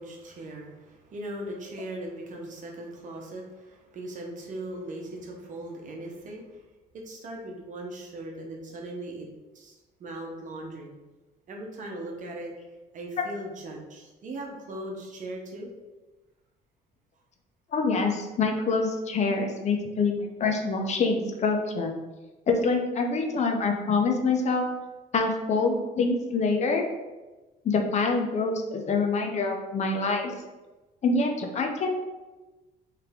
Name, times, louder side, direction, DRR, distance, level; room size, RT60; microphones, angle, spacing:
voice 1, 0.0-6.6 6.9-9.3 9.5-10.9 11.5-12.5 12.9-15.7, right 1 dB, 50° right, 0 dB, 0.9 m, -39 dB
voice 2, 17.7-21.9 22.5-24.7 25.1-26.9 27.6-30.3 31.0-31.9, left 4 dB, 40° left, 3 dB, 0.6 m, -25 dB
3.4 x 3.3 x 3.5 m, 1.1 s
cardioid pair, 110°, 17 cm